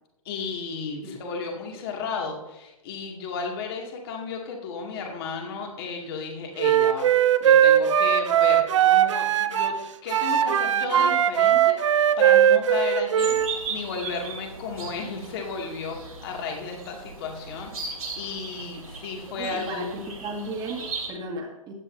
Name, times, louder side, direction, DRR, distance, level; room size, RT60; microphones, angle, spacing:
voice 1, 0.2-7.1 7.4-9.8 10.0-19.8, left 5 dB, 40° left, 1 dB, 2.4 m, -34 dB
voice 2, 1.0-1.3 19.3-21.7, right 1 dB, 20° right, 1 dB, 2.0 m, -35 dB
Wind instrument woodwind instrument, 6.6-9.8 10.1-13.5, right 10 dB, 55° right, 0.6 m, -19 dB
sound 1, 13.2-21.1, right 4 dB, 75° right, 3.1 m, -37 dB
15.5 x 9.8 x 2.7 m, 0.97 s
figure-of-eight pair, 120°, 18 cm